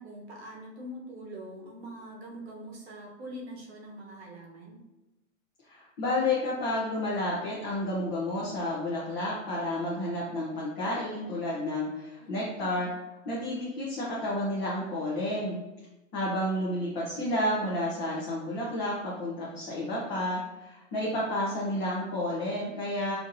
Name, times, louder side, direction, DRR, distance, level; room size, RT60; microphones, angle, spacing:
voice 1, 0.0-4.8 12.2-12.7, right 1 dB, 55° right, -1 dB, 1.0 m, -43 dB
voice 2, 5.7-12.9 13.2-15.6 16.1-23.2, left 1 dB, 20° left, -7 dB, 0.7 m, -31 dB
5.6 x 2.7 x 2.6 m, 1.0 s
hypercardioid pair, 160°, 38 cm